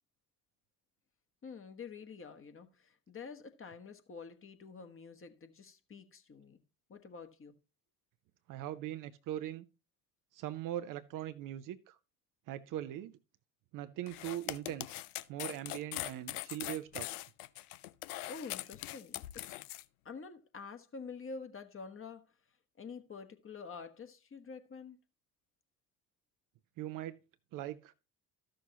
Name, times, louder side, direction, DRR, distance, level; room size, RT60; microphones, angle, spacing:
voice 1, 1.4-6.6 6.9-7.5 18.3-19.5 20.0-22.2 22.8-25.0, left 5 dB, 25° left, 1.2 m, -48 dB
voice 2, 8.5-9.6 10.3-12.0 12.5-13.1 13.7-15.0 15.3-17.1 26.8-27.2 27.5-27.9, right 12 dB, 40° right, 0.6 m, -40 dB
sound 1, 14.1-19.8, left 16 dB, 65° left, 0.6 m, -41 dB
14.0 x 6.4 x 2.8 m
figure-of-eight pair, 55°, 49 cm